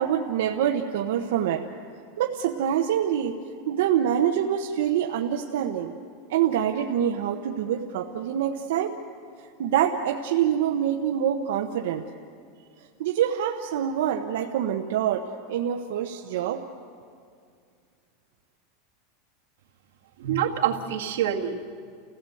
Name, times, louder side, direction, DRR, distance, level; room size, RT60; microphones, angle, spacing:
voice 1, 0.0-1.6 2.2-3.3 3.7-5.9 6.3-9.0 9.6-12.0 13.0-16.6, right 9 dB, 70° right, 2 dB, 1.0 m, -25 dB
voice 2, 20.2-21.7, right 9 dB, 90° right, 2 dB, 2.0 m, -26 dB
29.5 x 16.5 x 7.8 m, 2.2 s
supercardioid pair, 180°, 0 cm